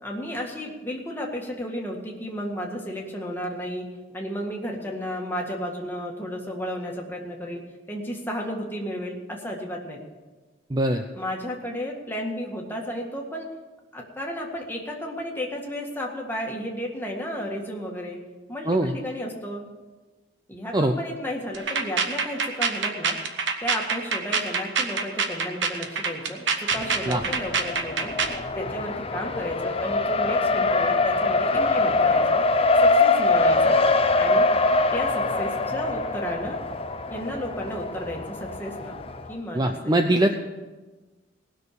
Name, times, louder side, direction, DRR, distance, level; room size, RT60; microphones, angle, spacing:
voice 1, 0.0-3.8 4.1-7.6 7.9-10.0 11.1-13.5 13.9-18.2 18.5-19.7 20.5-23.2 23.6-28.2 28.6-32.4 32.8-33.8 34.1-34.5 34.9-36.6 37.1-39.0 39.3-40.3, equal, 10° left, -1 dB, 1.8 m, -33 dB
voice 2, 10.7-11.0 18.7-18.9 20.7-20.9 27.0-27.2 39.5-40.3, right 1 dB, 20° right, 6 dB, 0.5 m, -22 dB
sound 1, 21.5-28.4, right 5 dB, 65° right, 1.1 m, -26 dB
Race car auto racing, 26.7-39.3, left 3 dB, 30° left, 0.6 m, -23 dB
19.0 x 6.4 x 6.8 m, 1.2 s
head